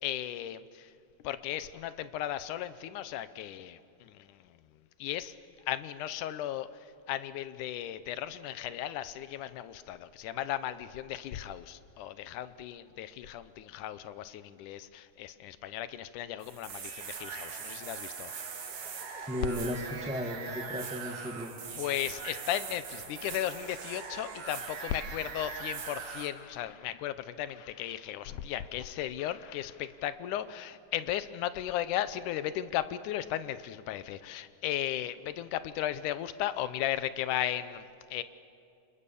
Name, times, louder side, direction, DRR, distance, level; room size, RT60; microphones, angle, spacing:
voice 1, 0.0-0.9 1.2-4.6 5.0-5.3 5.7-18.3 21.7-38.2, left 12 dB, 80° left, 13 dB, 2.3 m, -36 dB
sound 1, 16.4-26.3, right 5 dB, 80° right, 3.7 m, -41 dB
voice 2, 19.3-21.5, equal, 5° right, 0 dB, 0.8 m, -35 dB
28.5 x 27.0 x 7.1 m, 2.6 s
omnidirectional pair, 3.6 m